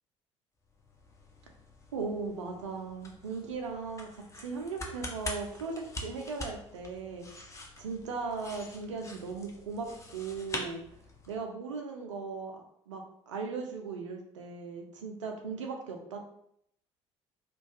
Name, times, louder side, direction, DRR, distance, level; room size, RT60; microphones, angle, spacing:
sound 1, 0.7-11.5, left 2 dB, 20° left, 0.5 m, -45 dB
voice 1, 1.9-4.1 4.3-7.3 7.8-9.9 10.1-10.8 11.3-16.2, right 4 dB, 75° right, 2 dB, 0.4 m, -38 dB
2.2 x 2.2 x 2.5 m, 0.71 s
figure-of-eight pair, 50°, 16 cm